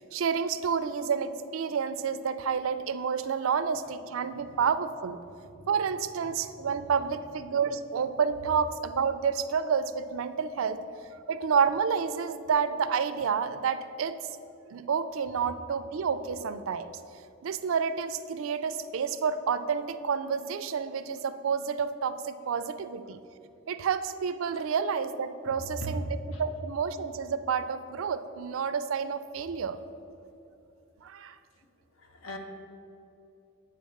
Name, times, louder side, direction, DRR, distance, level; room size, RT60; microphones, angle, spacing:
voice 1, 0.0-5.2 5.7-10.8 11.3-14.2 14.7-16.9 17.4-23.2 23.7-29.8 31.0-31.4, right 6 dB, 75° right, 12 dB, 0.4 m, -29 dB
voice 2, 32.0-32.4, right 1 dB, 75° left, 3 dB, 1.0 m, -39 dB
8.3 x 4.1 x 6.4 m, 2.8 s
head